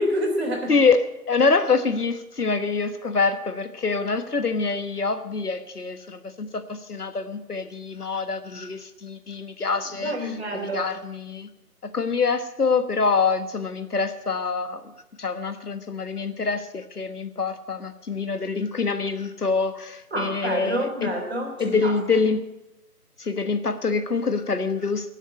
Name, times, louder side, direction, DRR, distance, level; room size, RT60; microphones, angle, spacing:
voice 1, 0.0-0.7 10.0-10.9 20.1-22.2, equal, 40° right, 2 dB, 3.3 m, -28 dB
voice 2, 0.7-10.4 10.7-11.5 11.8-14.9 15.2-21.1 21.6-22.4 23.2-25.1, left 4 dB, 70° left, 10 dB, 1.4 m, -25 dB
19.0 x 7.4 x 8.1 m, 0.92 s
figure-of-eight pair, 165°, 47 cm